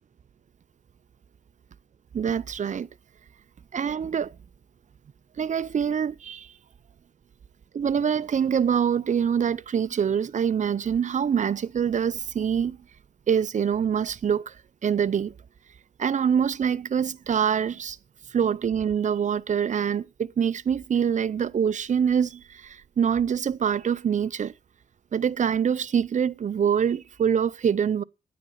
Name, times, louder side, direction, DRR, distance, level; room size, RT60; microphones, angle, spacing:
voice 1, 2.1-2.9 3.7-4.3 5.4-6.5 7.7-12.8 13.3-14.6 14.8-15.3 16.0-18.0 18.3-24.5 25.1-28.0, right 7 dB, 50° right, 0.5 m, -25 dB
9.5 x 9.4 x 5.5 m
wide cardioid pair, 100°, 17 cm